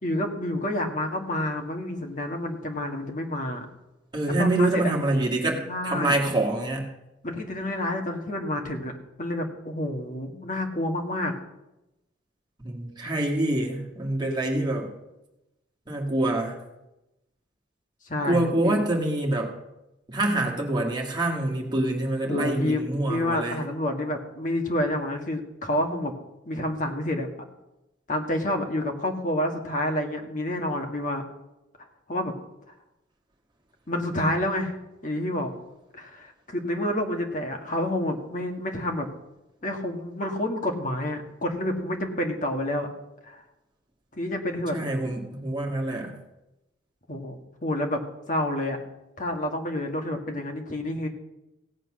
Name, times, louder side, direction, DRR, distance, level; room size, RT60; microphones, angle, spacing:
voice 1, 0.0-3.6 4.4-4.9 5.6-6.2 7.2-8.9 9.2-11.3 18.1-18.8 22.3-26.1 26.4-27.3 28.1-31.2 32.1-32.3 33.9-34.8 35.0-35.5 35.9-39.1 39.6-42.9 43.3-43.4 44.1-44.8 47.1-48.0 48.3-48.8 49.2-51.1, left 1 dB, 40° left, 3 dB, 1.7 m, -29 dB
voice 2, 4.1-6.9 12.6-14.9 15.9-16.6 18.2-19.5 20.1-23.6 44.7-46.1, right 1 dB, 20° right, -1 dB, 2.2 m, -26 dB
16.5 x 7.8 x 6.3 m, 0.94 s
head